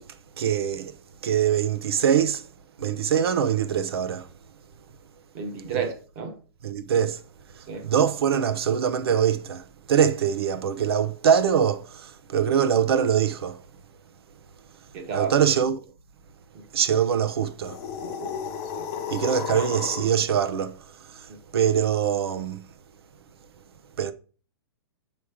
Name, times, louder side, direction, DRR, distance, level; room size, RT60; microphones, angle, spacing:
voice 1, 0.4-0.9 1.2-2.5 2.8-4.3 5.7-5.8 6.6-7.2 7.5-13.6 15.1-15.8 16.7-17.8 19.1-22.6 24.0-24.1, right 8 dB, 70° right, 0.8 m, -23 dB
voice 2, 5.3-6.3 7.7-7.8 14.9-15.3 16.5-16.6 18.0-18.4 18.7-18.9 21.3-21.4, right 6 dB, 30° right, 1.3 m, -32 dB
sound 1, 17.6-20.2, left 7 dB, 25° left, 0.8 m, -33 dB
7.1 x 3.2 x 4.9 m
hypercardioid pair, 170°, 13 cm